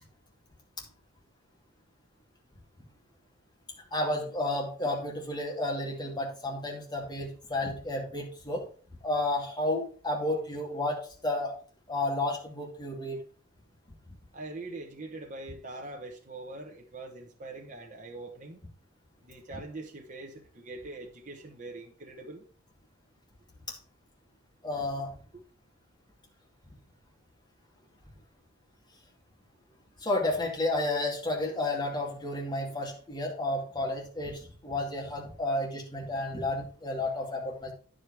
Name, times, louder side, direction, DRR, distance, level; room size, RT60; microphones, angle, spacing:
voice 1, 3.9-8.6 9.0-11.5 11.9-13.2 24.6-25.1 30.0-37.7, left 2 dB, 20° left, 2.4 m, -31 dB
voice 2, 14.3-18.6 19.2-22.4, right 2 dB, 35° right, 1.1 m, -43 dB
9.9 x 5.1 x 4.7 m
head